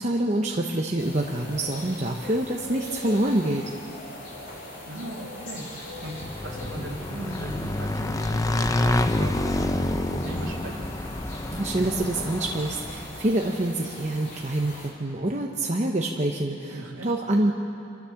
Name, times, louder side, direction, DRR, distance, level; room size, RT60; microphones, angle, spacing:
voice 1, 0.0-3.6 11.5-17.5, right 1 dB, 35° right, 0 dB, 0.9 m, -26 dB
sound 1, 1.0-14.9, left 1 dB, 40° left, 4.1 m, -41 dB
voice 2, 4.9-6.2 6.4-10.9 16.7-17.1, right 1 dB, 65° right, -2 dB, 3.0 m, -38 dB
Motorcycle / Engine, 6.0-13.3, left 1 dB, 15° left, 0.6 m, -28 dB
28.0 x 13.5 x 7.2 m, 2.6 s
head